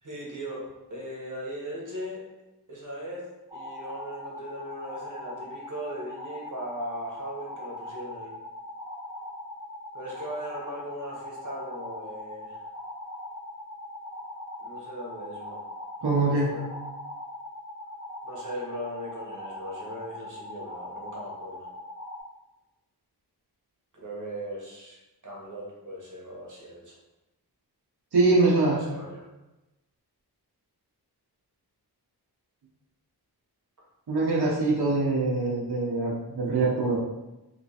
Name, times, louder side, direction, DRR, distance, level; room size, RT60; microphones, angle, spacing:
voice 1, 0.0-2.2 2.7-8.3 9.9-12.6 14.6-15.6 16.2-16.7 18.2-21.7 23.9-25.0 25.2-27.0 28.2-29.2, equal, 50° right, -3 dB, 1.1 m, -38 dB
sound 1, 3.5-22.2, left 1 dB, 10° right, 0.9 m, -41 dB
voice 2, 16.0-16.5 28.1-28.8 34.1-37.0, right 3 dB, 75° right, -6 dB, 0.8 m, -23 dB
3.1 x 3.0 x 2.8 m, 0.99 s
wide cardioid pair, 85°, 40 cm